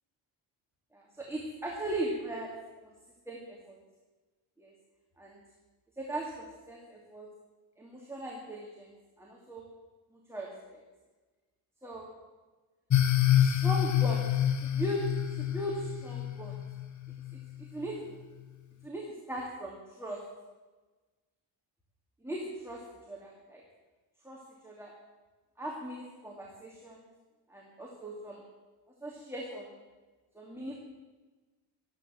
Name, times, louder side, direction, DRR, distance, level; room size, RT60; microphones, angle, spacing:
voice 1, 0.9-2.5 2.8-2.9 3.3-3.8 4.6-4.7 5.2-5.4 6.0-7.3 7.8-9.6 10.3-10.8 11.8-12.1 13.4-14.3 14.6-15.0 15.4-16.6 17.6-18.2 18.8-20.2 22.2-22.8 23.1-23.6 24.2-24.9 25.6-27.0 27.5-28.4 29.0-29.7 30.3-30.8, right 1 dB, 5° right, -3 dB, 2.5 m, -39 dB
sound 1, 12.9-17.5, left 11 dB, 35° left, 1.0 m, -27 dB
13.0 x 12.0 x 7.6 m, 1.3 s
cardioid pair, 125°, 49 cm